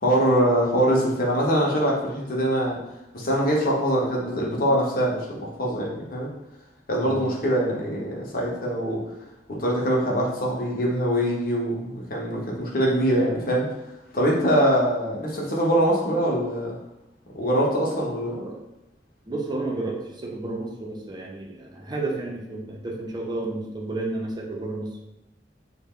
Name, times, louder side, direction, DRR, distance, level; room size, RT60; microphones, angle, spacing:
voice 1, 0.0-2.8 3.1-6.3 6.9-9.0 9.5-13.7 14.1-16.8 17.3-18.3, equal, 55° left, -3 dB, 0.8 m, -23 dB
voice 2, 18.2-18.6 19.3-24.9, right 2 dB, 25° right, -1 dB, 0.5 m, -31 dB
3.3 x 2.2 x 3.6 m, 0.90 s
head